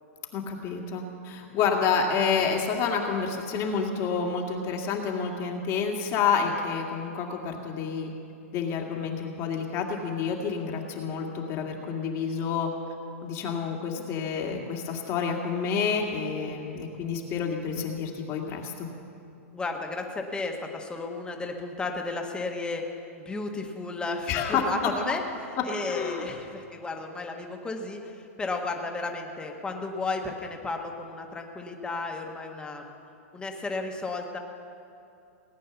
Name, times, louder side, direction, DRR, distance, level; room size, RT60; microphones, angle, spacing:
voice 1, 0.3-8.1 8.5-12.7 13.2-18.9 24.3-24.6 25.9-26.2, left 6 dB, 40° left, 1 dB, 2.2 m, -29 dB
voice 2, 19.5-22.9 23.2-25.2 25.6-32.9 33.3-34.4, left 3 dB, 10° left, 3 dB, 1.5 m, -33 dB
18.0 x 9.1 x 7.1 m, 2.7 s
hypercardioid pair, 125°, 8 cm